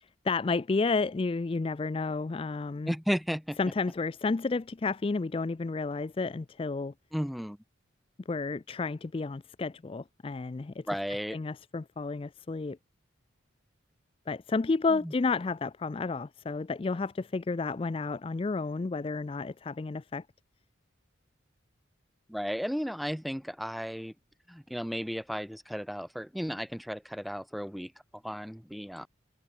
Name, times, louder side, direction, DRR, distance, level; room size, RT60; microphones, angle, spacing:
voice 1, 0.2-2.9 3.6-6.9 8.3-10.8 11.3-12.8 14.3-20.2, left 3 dB, 30° left, 0.3 m, -31 dB
voice 2, 2.9-3.6 7.1-7.6 10.9-11.4 15.0-15.1 22.3-24.1 24.5-27.9 28.2-29.1, equal, ahead, 1.1 m, -34 dB
head